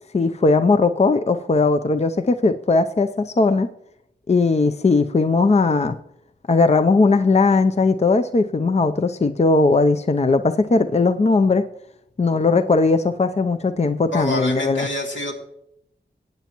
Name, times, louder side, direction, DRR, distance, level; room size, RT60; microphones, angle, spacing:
voice 1, 0.1-3.7 4.3-6.0 6.5-11.7 12.2-14.9, left 3 dB, 35° left, 10 dB, 0.5 m, -18 dB
voice 2, 14.1-15.3, left 1 dB, 80° left, 0 dB, 2.6 m, -26 dB
16.0 x 9.3 x 3.0 m, 0.77 s
wide cardioid pair, 55°, 19 cm